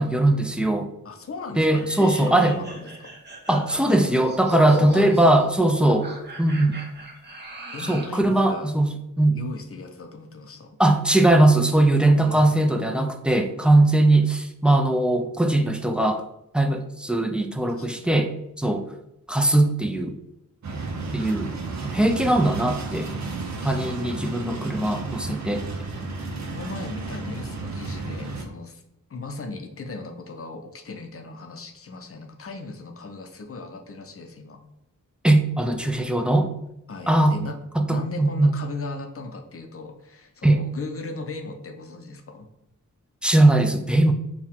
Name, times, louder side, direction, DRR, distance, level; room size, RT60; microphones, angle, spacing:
voice 1, 0.0-0.9 1.6-2.5 3.5-6.1 6.4-6.8 7.8-8.9 9.2-9.4 10.8-16.2 16.5-18.9 19.3-20.2 21.1-21.5 21.8-23.1 23.6-25.7 35.2-36.5 37.1-37.4 37.8-38.5 40.4-40.6 43.2-44.1, right 1 dB, 5° right, 5 dB, 0.4 m, -20 dB
voice 2, 1.0-3.2 4.6-5.5 7.7-8.7 9.3-10.7 12.2-12.6 17.7-18.1 23.8-23.9 26.4-28.8 29.1-34.6 36.9-37.6 37.9-42.5, left 3 dB, 45° left, 4 dB, 0.6 m, -37 dB
sound 1, 1.6-8.2, right 1 dB, 30° right, 1.0 m, -37 dB
sound 2, 20.6-28.4, right 3 dB, 55° right, 0.7 m, -32 dB
4.4 x 2.3 x 3.6 m, 0.84 s
cardioid pair, 75°, 33 cm